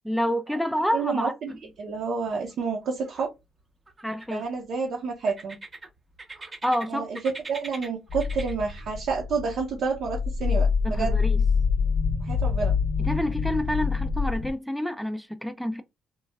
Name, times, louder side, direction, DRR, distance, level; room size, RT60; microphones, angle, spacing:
voice 1, 0.0-1.6 4.0-4.4 6.6-7.1 10.8-11.4 13.0-15.8, equal, ahead, 0.4 m, -28 dB
voice 2, 0.9-1.5 1.8-3.3 4.3-5.6 6.9-11.2 12.2-12.7, right 5 dB, 70° right, 0.8 m, -29 dB
sound 1, 1.5-2.0 2.3-3.3 3.9-4.7 5.3-6.9 7.1-8.9, right 2 dB, 25° right, 0.7 m, -42 dB
sound 2, 8.1-14.5, left 5 dB, 55° left, 0.7 m, -26 dB
3.0 x 2.3 x 2.2 m
cardioid pair, 90°, 0 cm